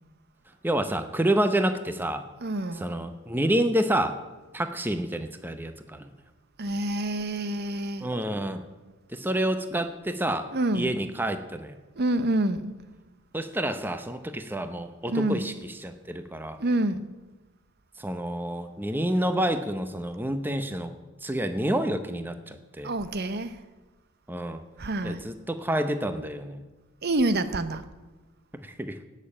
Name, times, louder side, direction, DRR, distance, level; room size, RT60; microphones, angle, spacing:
voice 1, 0.6-2.2 2.7-4.2 4.5-6.1 8.0-8.6 9.1-10.5 10.7-11.8 13.3-16.6 18.0-20.9 21.2-22.9 24.3-24.6 25.0-26.6 28.6-29.0, right 1 dB, 10° right, 0.7 m, -28 dB
voice 2, 2.4-3.0 6.6-8.1 10.5-10.9 12.0-12.8 15.1-15.5 16.6-17.1 22.8-23.6 24.8-25.2 27.0-27.8, right 1 dB, 45° right, 0.8 m, -27 dB
17.5 x 6.7 x 8.7 m
head